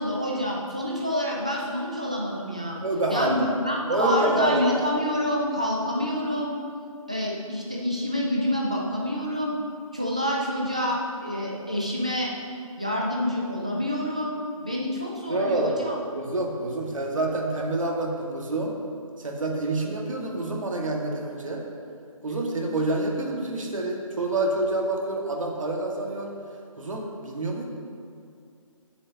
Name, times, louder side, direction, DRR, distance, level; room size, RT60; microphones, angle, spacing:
voice 1, 0.0-2.8 3.1-6.5 7.1-9.6 9.9-12.3 12.8-14.4 14.6-15.9, equal, 10° right, -3 dB, 0.4 m, -27 dB
voice 2, 2.8-3.3 3.9-4.6 15.3-15.8 16.2-18.8 19.2-21.6 22.2-26.3 26.8-27.6, right 2 dB, 65° right, -1 dB, 1.8 m, -27 dB
15.5 x 7.1 x 2.8 m, 2.3 s
hypercardioid pair, 175°, 18 cm